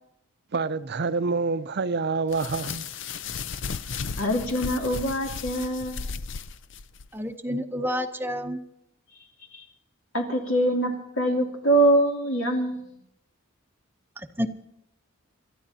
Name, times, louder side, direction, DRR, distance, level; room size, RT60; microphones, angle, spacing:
voice 1, 0.5-2.8, right 4 dB, 55° right, 0.5 m, -27 dB
sound 1, 2.3-7.1, left 5 dB, 60° left, 0.5 m, -35 dB
voice 2, 4.2-6.1 9.5-9.6 10.1-12.8, right 1 dB, 75° left, 2.7 m, -24 dB
voice 3, 7.1-8.6 14.4-14.5, equal, 10° right, 0.7 m, -29 dB
29.0 x 13.5 x 2.8 m
head